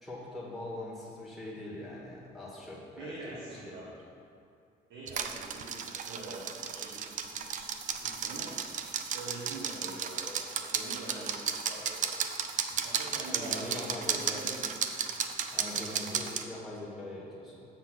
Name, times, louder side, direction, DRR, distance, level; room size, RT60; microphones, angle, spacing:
voice 1, 0.0-3.8 13.3-14.4 15.5-17.6, left 1 dB, ahead, -8 dB, 1.7 m, -42 dB
voice 2, 3.0-3.9 4.9-7.7 8.0-8.5 9.1-12.1 12.8-14.8 15.6-15.8, right 2 dB, 80° right, -7 dB, 1.4 m, -44 dB
sound 1, 5.1-16.4, right 7 dB, 50° right, 0.5 m, -34 dB
7.3 x 3.9 x 6.2 m, 2.5 s
cardioid pair, 110°, 17 cm